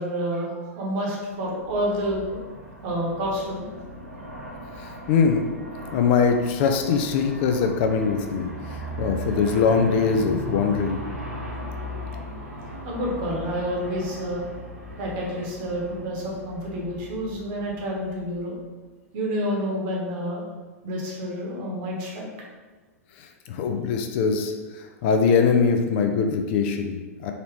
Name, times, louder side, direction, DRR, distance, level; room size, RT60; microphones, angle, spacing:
voice 1, 0.0-2.2 2.8-3.7 12.8-14.4 15.0-18.5 19.1-20.4 20.8-22.3, equal, 45° right, -2 dB, 1.1 m, -29 dB
Aircraft, 1.4-18.6, right 1 dB, 85° right, 1.0 m, -38 dB
voice 2, 4.8-5.4 5.9-8.5 9.0-11.0 23.5-27.3, left 5 dB, 45° left, 5 dB, 0.4 m, -22 dB
3.9 x 2.8 x 3.0 m, 1.3 s
figure-of-eight pair, 100°, 8 cm